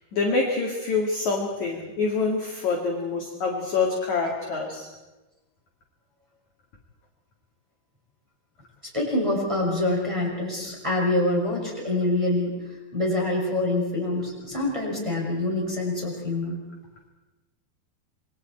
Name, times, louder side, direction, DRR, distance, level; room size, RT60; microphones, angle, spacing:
voice 1, 0.1-4.9, left 4 dB, 50° left, -1 dB, 2.9 m, -26 dB
voice 2, 8.9-12.5 12.9-16.6, left 2 dB, 5° right, -4 dB, 6.0 m, -25 dB
28.0 x 23.5 x 4.5 m, 1.1 s
omnidirectional pair, 5.4 m